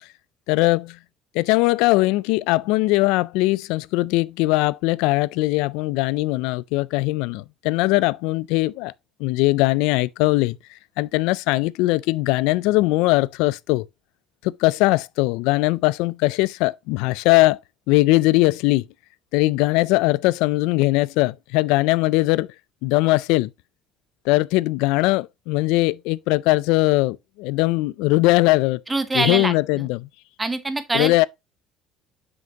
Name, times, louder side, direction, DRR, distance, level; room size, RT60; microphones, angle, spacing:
voice 1, 0.5-1.0 1.3-8.9 9.2-10.6 11.0-13.9 14.4-17.6 17.9-18.9 19.3-22.5 22.8-23.5 24.3-28.8 29.1-30.1 30.9-31.3, left 20 dB, 85° left, 0.3 m, -20 dB
voice 2, 28.9-29.9 30.4-31.3, right 2 dB, 10° right, 0.8 m, -25 dB
7.6 x 5.9 x 2.8 m
cardioid pair, 175°, 0 cm